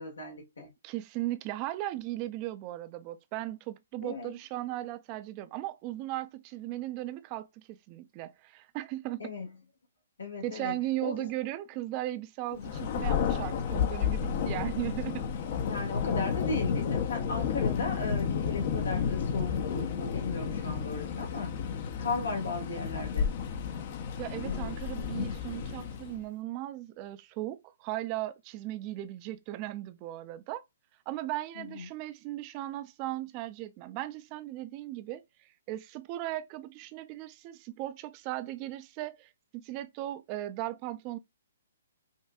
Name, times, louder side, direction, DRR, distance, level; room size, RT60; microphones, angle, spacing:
voice 1, 0.0-0.7 4.0-4.3 9.2-9.5 10.2-11.3 12.5-12.7 15.6-21.6 22.0-23.3 24.4-24.8 31.6-31.9, left 3 dB, 85° left, 1.9 m, -36 dB
voice 2, 0.8-9.3 10.4-15.2 24.2-30.6 31.1-41.2, right 15 dB, 30° right, 0.4 m, -37 dB
Thunder, 12.6-26.2, left 7 dB, 45° left, 0.7 m, -31 dB
5.4 x 2.6 x 2.3 m
hypercardioid pair, 140°, 0 cm